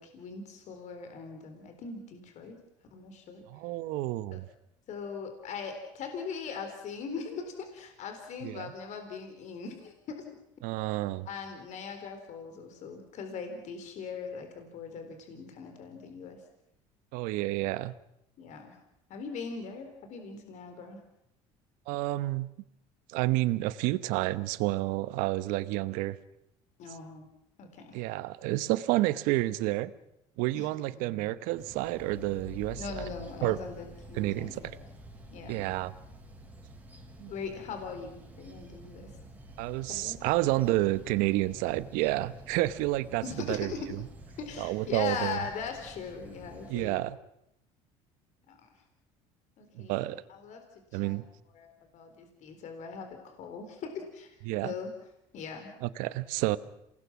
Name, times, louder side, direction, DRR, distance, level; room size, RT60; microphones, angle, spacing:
voice 1, 0.0-2.6 2.9-3.4 4.3-4.4 4.9-10.2 11.3-16.4 18.4-18.8 19.1-21.0 26.8-27.3 27.6-28.0 30.5-30.7 32.8-34.8 35.3-35.7 37.3-39.1 39.9-40.2 43.2-43.9 44.4-47.0 48.5-48.7 49.6-50.6 50.9-51.2 51.5-51.7 51.9-54.4 54.6-54.9 55.3-55.7, left 5 dB, 60° left, 6 dB, 4.0 m, -40 dB
voice 2, 3.5-4.5 8.4-8.7 10.6-11.3 17.1-17.9 21.9-22.5 23.1-26.2 27.9-29.9 30.4-32.8 33.4-33.6 34.1-34.7 35.5-35.9 37.2-37.3 39.6-44.0 44.6-45.4 46.7-47.2 49.7-50.2 50.9-51.2 54.5-54.7 55.8-56.6, right 17 dB, 75° right, 16 dB, 1.0 m, -30 dB
sound 1, 31.6-47.0, equal, 10° right, 6.2 m, -49 dB
28.0 x 19.5 x 6.1 m, 0.79 s
supercardioid pair, 85°, 14 cm